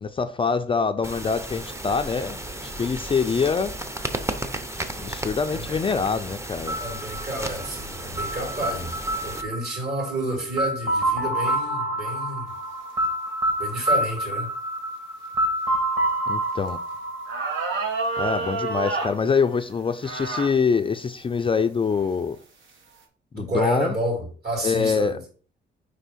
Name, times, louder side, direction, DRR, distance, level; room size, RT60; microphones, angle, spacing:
voice 1, 0.0-3.7 5.0-6.8 16.3-16.8 18.2-22.4 23.3-23.9 24.6-25.2, left 5 dB, 25° left, 0.4 m, -25 dB
sound 1, 1.0-9.4, right 1 dB, 15° right, 0.7 m, -34 dB
voice 2, 5.5-5.9 6.7-9.0 9.2-12.5 13.6-14.5 23.3-25.2, right 1 dB, 50° right, 3.3 m, -30 dB
sound 2, 6.7-18.5, right 1 dB, 35° right, 2.1 m, -28 dB
sound 3, 16.7-16.8 17.3-19.2 20.0-20.6 21.2-21.3 22.0-22.3, right 4 dB, 75° right, 1.3 m, -28 dB
5.0 x 4.5 x 4.2 m
cardioid pair, 90°, 20 cm